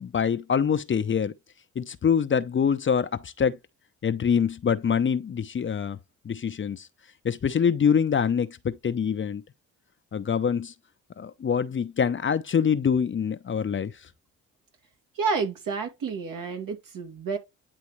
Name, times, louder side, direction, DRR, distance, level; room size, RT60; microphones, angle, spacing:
voice 1, 0.0-1.3 1.8-3.6 4.0-6.0 6.2-6.9 7.2-9.4 10.1-10.7 11.2-13.9, left 7 dB, 35° left, 0.7 m, -25 dB
voice 2, 15.2-17.4, right 5 dB, 65° right, 2.1 m, -30 dB
9.9 x 3.4 x 3.1 m
supercardioid pair, 70°, 35 cm